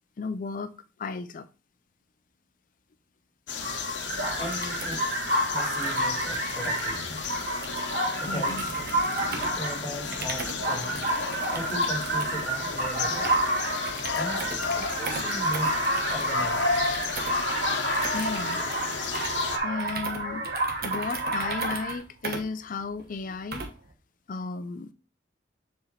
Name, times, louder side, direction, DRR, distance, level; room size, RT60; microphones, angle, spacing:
voice 1, 0.2-1.5 8.3-8.6 18.1-18.6 19.6-20.5 20.8-23.7 24.3-24.9, left 4 dB, 50° left, 0.4 m, -34 dB
sound 1, 3.5-19.6, left 5 dB, 85° left, 0.9 m, -33 dB
sound 2, 3.6-22.0, right 1 dB, 75° right, 2.5 m, -30 dB
voice 2, 4.4-5.0 5.5-7.2 8.2-8.9 9.6-11.1 11.5-13.3 14.1-15.8 16.0-16.7 18.5-18.6, left 1 dB, 20° left, 1.8 m, -37 dB
sound 3, 4.4-23.9, right 4 dB, 60° right, 1.1 m, -40 dB
7.1 x 4.4 x 3.1 m
head